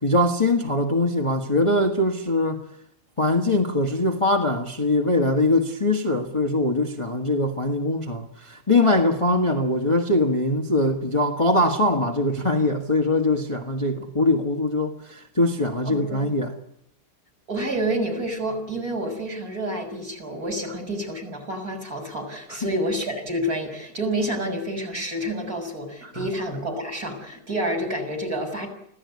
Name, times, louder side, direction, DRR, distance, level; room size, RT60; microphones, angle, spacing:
voice 1, 0.0-2.6 3.2-16.5 22.5-22.6 26.0-26.3, left 2 dB, 15° left, 1.6 m, -22 dB
voice 2, 15.8-16.4 17.5-28.7, right 1 dB, 45° right, 6.7 m, -29 dB
25.5 x 16.5 x 9.7 m
omnidirectional pair, 2.3 m